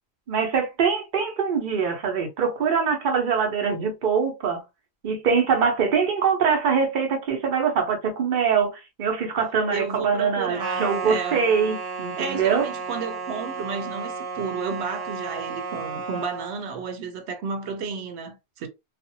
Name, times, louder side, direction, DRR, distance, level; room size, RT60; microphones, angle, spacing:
voice 1, 0.3-4.6 5.0-12.7, right 6 dB, 55° right, 0.9 m, -23 dB
voice 2, 9.7-11.5 12.2-18.7, right 5 dB, 90° right, 0.9 m, -32 dB
sound 1, 10.6-16.6, right 5 dB, 25° right, 0.6 m, -33 dB
2.5 x 2.1 x 2.6 m
omnidirectional pair, 1.1 m